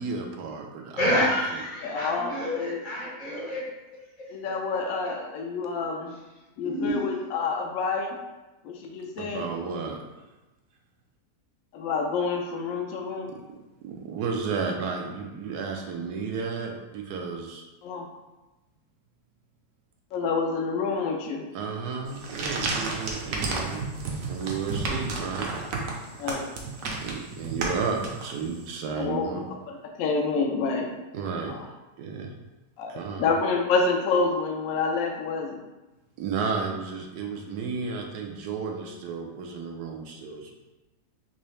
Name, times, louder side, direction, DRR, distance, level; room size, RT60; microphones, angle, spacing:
voice 1, 0.0-1.2 2.7-2.8 9.2-10.0 13.3-13.4 13.8-17.7 21.5-23.8 24.3-25.5 27.0-29.5 31.1-31.6 32.0-32.3 32.9-33.3 36.2-40.5, right 5 dB, 85° right, 2 dB, 1.2 m, -32 dB
voice 2, 1.0-3.6 6.6-7.1, left 1 dB, 45° left, -4 dB, 0.7 m, -28 dB
voice 3, 1.8-2.8 4.3-6.2 6.6-8.2 8.6-9.5 11.7-13.3 17.8-18.1 20.1-21.5 26.2-26.4 29.0-29.3 29.7-30.9 31.5-31.7 32.8-35.6, left 4 dB, 70° left, 1 dB, 1.0 m, -28 dB
sound 1, 22.1-28.6, right 3 dB, 65° right, 1.0 m, -32 dB
4.0 x 2.7 x 3.1 m, 1.1 s
omnidirectional pair, 1.7 m